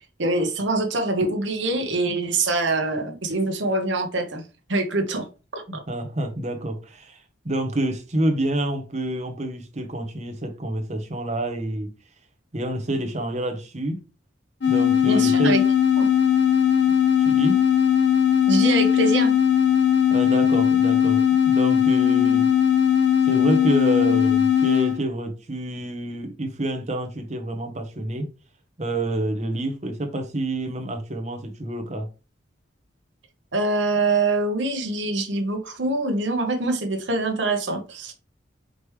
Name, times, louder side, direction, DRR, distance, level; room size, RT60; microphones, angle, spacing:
voice 1, 0.2-4.4 4.7-5.3 5.5-5.6 15.0-15.6 16.0-16.1 18.5-19.3 33.5-38.1, right 2 dB, 70° right, 1.2 m, -24 dB
voice 2, 5.7-11.9 12.5-14.0 14.7-15.5 17.2-17.6 20.1-22.5 23.2-28.3 28.8-32.1, right 1 dB, 35° right, 1.0 m, -28 dB
sound 1, 14.6-25.0, left 9 dB, 65° left, 0.8 m, -19 dB
5.1 x 3.2 x 3.2 m
head